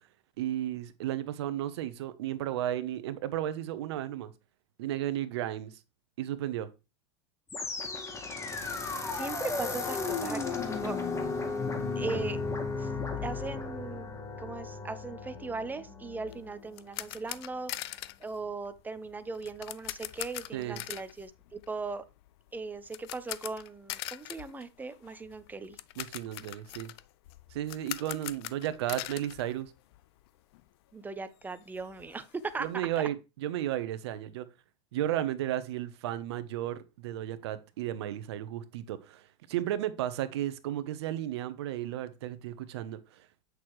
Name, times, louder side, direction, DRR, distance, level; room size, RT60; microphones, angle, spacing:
voice 1, 0.4-4.3 4.8-5.7 6.2-6.7 20.5-20.8 26.0-26.9 27.5-29.7 32.6-34.5 34.9-39.2 39.5-43.4, right 12 dB, 70° right, 1.0 m, -34 dB
sound 1, 7.5-16.6, left 4 dB, 20° left, 1.8 m, -35 dB
voice 2, 9.1-11.0 11.9-12.4 12.8-12.9 13.2-22.0 22.5-25.8 30.9-32.3 32.5-32.7, right 3 dB, 10° right, 0.9 m, -39 dB
sound 2, 16.3-30.3 30.5-30.7 31.1-31.2 31.4-33.0, left 16 dB, 65° left, 0.5 m, -43 dB
8.4 x 6.2 x 3.2 m
hypercardioid pair, 105°, 14 cm